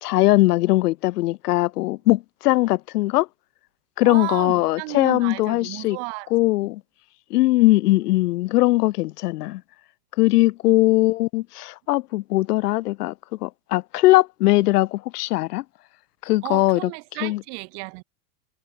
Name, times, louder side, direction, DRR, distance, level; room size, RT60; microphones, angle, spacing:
voice 1, 0.0-3.3 4.0-6.0 6.3-6.8 7.3-9.6 10.2-13.1 13.4-15.6 16.2-16.9 17.2-17.4, left 18 dB, 80° left, 1.0 m, -20 dB
voice 2, 4.0-6.3 10.6-10.8 16.4-18.0, right 40 dB or more, 40° right, 3.7 m, -33 dB
supercardioid pair, 175°, 46 cm